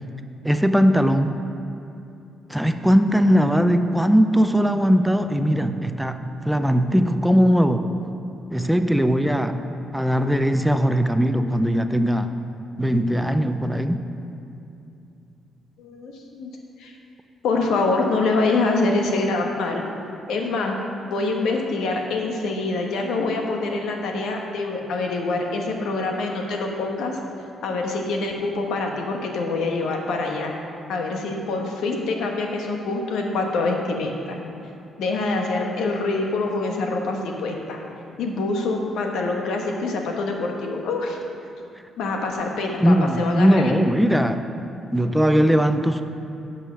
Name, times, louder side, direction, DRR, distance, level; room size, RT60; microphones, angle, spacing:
voice 1, 0.4-1.4 2.5-7.9 8.5-9.6 9.9-12.3 12.8-14.1 42.8-44.4 44.9-46.0, equal, 5° right, 8 dB, 0.5 m, -19 dB
voice 2, 15.8-16.5 16.8-16.9 17.4-19.8 20.3-20.8 21.1-27.2 27.6-30.5 30.9-34.4 35.0-37.8 38.2-41.2 42.0-43.8, left 3 dB, 80° left, 1 dB, 1.2 m, -25 dB
8.7 x 5.6 x 6.3 m, 2.7 s
cardioid pair, 90°, 0 cm